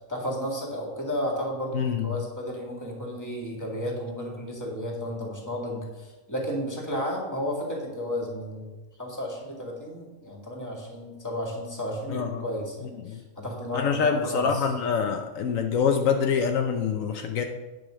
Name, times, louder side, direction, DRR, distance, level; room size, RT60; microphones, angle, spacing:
voice 1, 0.0-8.7 9.0-14.7, equal, 15° left, -1 dB, 2.0 m, -33 dB
voice 2, 1.7-2.1 12.1-12.4 13.0-13.3 13.7-17.4, left 6 dB, 75° left, 5 dB, 1.1 m, -25 dB
9.3 x 5.2 x 6.3 m, 1.2 s
omnidirectional pair, 1.4 m